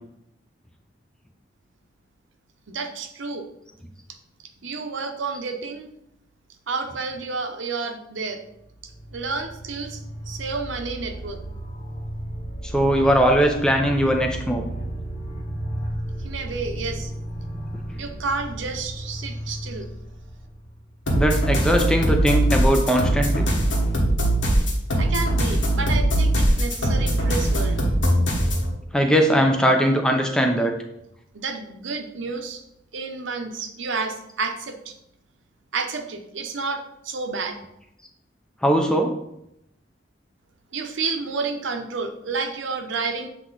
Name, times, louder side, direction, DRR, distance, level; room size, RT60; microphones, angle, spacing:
voice 1, 2.7-3.4 4.6-5.9 6.7-8.4 9.1-10.0 10.3-11.4 16.2-17.1 18.0-19.9 25.0-27.8 31.3-32.6 32.9-34.9 35.7-37.6 40.7-43.3, right 4 dB, 85° right, 5 dB, 0.8 m, -30 dB
sound 1, 8.5-21.3, right 1 dB, 60° left, 2.0 m, -34 dB
voice 2, 12.7-14.6 21.1-23.5 28.9-30.7 38.6-39.1, equal, 5° left, 3 dB, 0.6 m, -20 dB
sound 2, 21.1-28.7, right 1 dB, 80° left, 1.4 m, -21 dB
8.0 x 3.0 x 3.9 m, 0.80 s
head